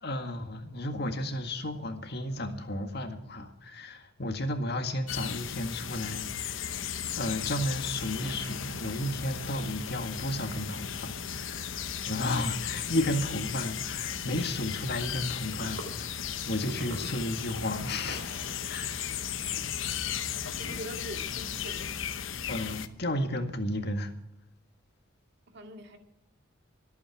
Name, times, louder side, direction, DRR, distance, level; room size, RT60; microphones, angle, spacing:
voice 1, 0.0-6.8 7.2-16.1 16.4-18.3 18.6-19.1 22.5-24.1, left 1 dB, 55° left, 6 dB, 1.9 m, -33 dB
sound 1, 5.1-22.9, left 8 dB, 80° left, 0.9 m, -36 dB
sound 2, 10.4-21.9, right 1 dB, 85° right, 3.7 m, -50 dB
voice 2, 20.6-21.9 25.5-26.0, equal, 60° right, 4 dB, 2.3 m, -43 dB
24.0 x 9.0 x 4.8 m, 0.80 s
head